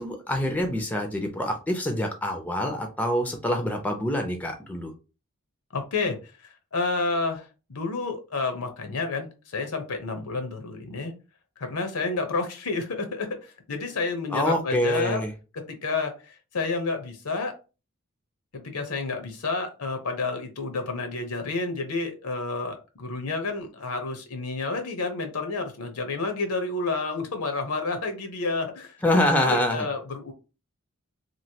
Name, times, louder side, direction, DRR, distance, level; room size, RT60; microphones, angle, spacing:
voice 1, 0.0-4.9 14.3-15.3 29.0-29.9, left 1 dB, 5° left, 3 dB, 0.4 m, -25 dB
voice 2, 5.7-11.1 11.6-15.2 15.7-17.5 18.5-29.0 29.5-30.3, left 3 dB, 85° left, 6 dB, 0.8 m, -30 dB
3.0 x 2.4 x 2.8 m, 0.31 s
head